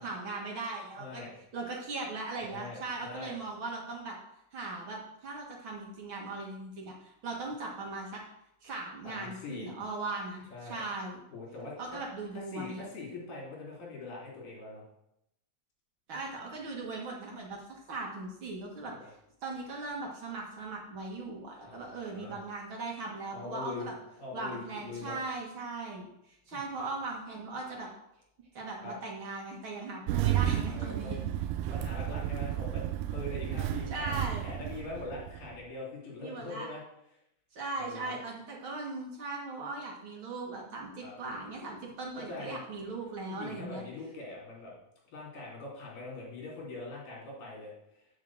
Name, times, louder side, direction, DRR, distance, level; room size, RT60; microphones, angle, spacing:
voice 1, 0.0-1.2 1.5-4.2 4.5-8.2 8.6-10.4 10.7-11.2 11.8-12.8 16.1-19.1 19.4-23.9 24.3-27.9 28.5-31.2 33.9-34.5 36.2-36.7 37.5-43.8, right 3 dB, 45° right, -2 dB, 1.8 m, -39 dB
voice 2, 1.0-1.3 2.4-3.4 9.0-9.7 10.5-10.8 11.3-12.0 12.3-14.8 18.8-19.1 21.6-22.4 23.3-23.9 24.2-25.2 28.8-28.9 30.7-31.2 31.7-36.8 37.8-38.2 41.0-41.1 42.3-42.6 43.3-44.7 45.1-47.7, left 3 dB, 65° left, -4 dB, 4.5 m, -42 dB
Engine starting, 30.1-35.6, right 11 dB, 85° right, 1.8 m, -32 dB
8.6 x 4.7 x 7.3 m, 0.80 s
omnidirectional pair, 4.0 m